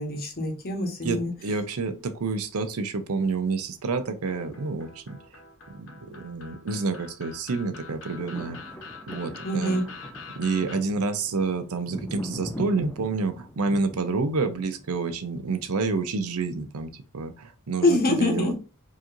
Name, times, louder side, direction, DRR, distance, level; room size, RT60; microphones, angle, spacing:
voice 1, 0.0-1.3 9.4-9.8 17.8-18.5, left 1 dB, 45° left, 1.1 m, -24 dB
voice 2, 1.0-5.2 5.7-8.6 9.1-9.8 10.3-18.5, right 4 dB, 85° right, 0.6 m, -29 dB
sound 1, 4.3-10.8, left 4 dB, 60° left, 0.9 m, -44 dB
sound 2, 7.8-16.0 16.5-16.6, equal, 10° left, 0.5 m, -41 dB
4.8 x 3.0 x 2.5 m
head